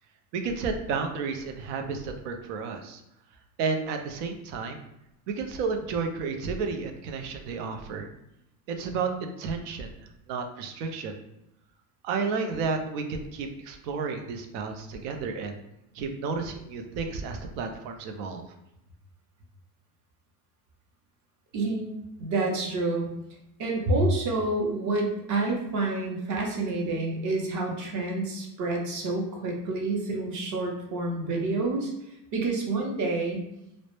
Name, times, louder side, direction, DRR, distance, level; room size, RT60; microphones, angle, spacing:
voice 1, 0.3-3.0 3.6-4.8 5.3-8.1 8.7-11.1 12.0-15.5 15.9-18.4, right 4 dB, 80° right, 5 dB, 0.6 m, -32 dB
voice 2, 21.5-21.9 22.2-23.1 23.6-31.9 32.3-33.4, right 2 dB, 40° right, 0 dB, 0.6 m, -28 dB
2.0 x 2.0 x 2.9 m, 0.86 s
supercardioid pair, 125°, 47 cm